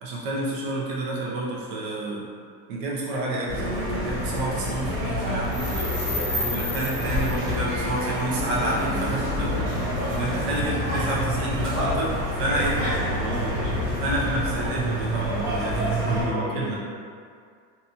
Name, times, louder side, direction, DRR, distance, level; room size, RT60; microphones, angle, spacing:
voice 1, 0.0-2.2 2.7-5.7 6.4-9.6 10.1-12.1 12.4-12.8 14.0-16.8, right 2 dB, 80° right, -5 dB, 0.7 m, -29 dB
sound 1, 3.5-16.2, equal, 40° right, 1.5 m, -27 dB
voice 2, 5.5-6.8 12.7-14.1 16.0-16.8, right 1 dB, 20° right, -13 dB, 1.0 m, -34 dB
2.7 x 2.3 x 2.7 m, 2.2 s
cardioid pair, 175°, 39 cm